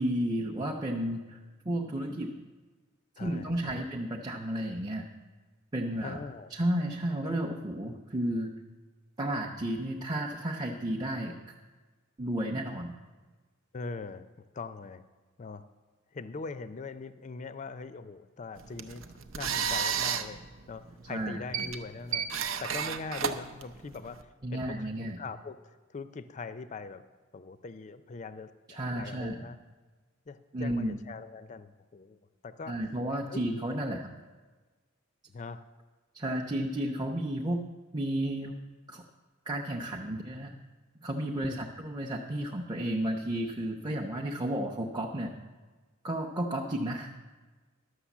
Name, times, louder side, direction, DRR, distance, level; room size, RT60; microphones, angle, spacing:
voice 1, 0.0-1.4 1.6-2.3 3.2-5.0 5.7-6.2 6.5-8.5 9.2-11.3 12.2-12.9 21.1-21.7 24.4-25.2 28.7-29.4 30.5-31.0 32.7-34.1 36.1-37.7 37.9-38.6 38.9-39.0 39.5-40.5 41.0-45.3 46.0-47.1, right 1 dB, 20° right, -1 dB, 0.7 m, -32 dB
voice 2, 3.2-3.9 6.0-6.5 13.7-14.3 14.5-15.0 15.4-15.6 16.1-19.0 19.4-20.4 20.7-22.3 22.6-27.0 27.3-29.6 30.3-32.2 32.4-32.8 33.3-33.4 35.3-35.6 41.4-41.6, left 4 dB, 35° left, 12 dB, 0.4 m, -42 dB
sound 1, 18.6-24.2, right 7 dB, 70° right, 0.7 m, -33 dB
11.5 x 6.5 x 7.2 m, 1.3 s
head